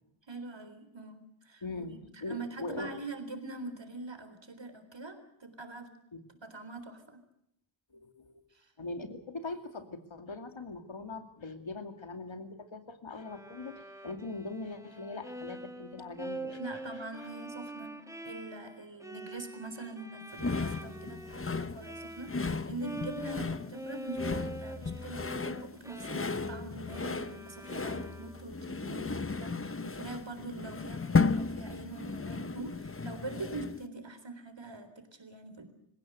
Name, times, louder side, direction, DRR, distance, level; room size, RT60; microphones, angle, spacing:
voice 1, 0.3-5.9 6.4-7.2 8.5-8.7 16.6-35.7, right 2 dB, 75° right, 8 dB, 4.0 m, -44 dB
voice 2, 1.6-3.0 6.1-6.2 7.9-8.4 8.8-16.6, left 3 dB, 90° left, 7 dB, 2.6 m, -41 dB
Bowed string instrument, 13.2-22.5 22.8-28.6, right 2 dB, 5° right, 2.4 m, -45 dB
sound 1, 20.4-33.9, left 4 dB, 30° left, 0.8 m, -34 dB
27.0 x 16.0 x 7.9 m, 0.75 s
wide cardioid pair, 55°, 45 cm